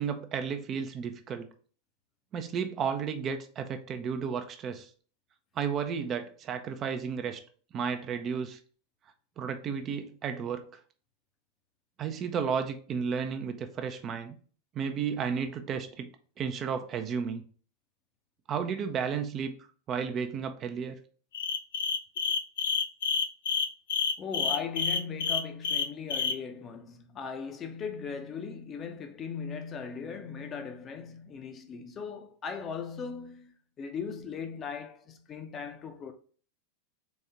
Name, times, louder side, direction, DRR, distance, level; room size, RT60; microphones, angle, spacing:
voice 1, 0.0-1.5 2.3-4.9 5.6-7.4 7.7-8.6 9.4-10.7 12.0-14.3 14.7-16.1 16.4-17.4 18.5-19.6 19.9-21.0, right 6 dB, 30° right, 0.5 m, -33 dB
sound 1, 21.3-26.4, left 6 dB, 60° left, 0.3 m, -29 dB
voice 2, 24.2-36.1, left 6 dB, 25° left, 0.6 m, -38 dB
4.1 x 3.5 x 3.3 m
figure-of-eight pair, 90°, 0 cm